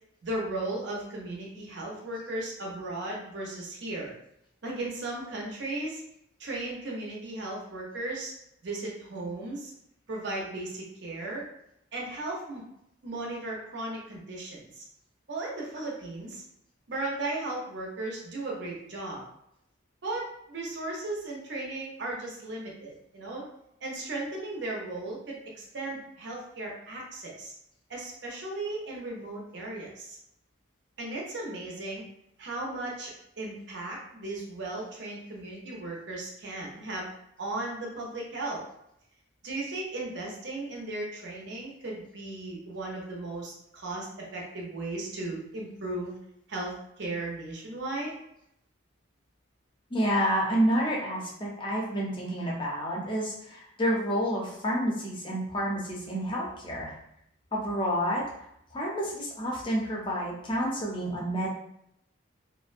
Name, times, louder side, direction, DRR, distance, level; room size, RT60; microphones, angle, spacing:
voice 1, 0.2-4.1 4.6-6.0 6.4-8.3 8.6-9.7 10.1-11.4 11.9-12.6 13.0-14.8 15.3-16.4 16.9-19.2 20.0-23.5 23.8-27.5 27.9-30.2 31.0-32.0 32.4-37.1 37.4-38.6 39.4-46.1 46.5-48.1, right 2 dB, 60° right, -2 dB, 0.6 m, -36 dB
voice 2, 49.9-56.9 57.5-58.2 58.7-61.5, equal, 25° left, -3 dB, 0.5 m, -29 dB
2.5 x 2.1 x 2.4 m, 0.78 s
head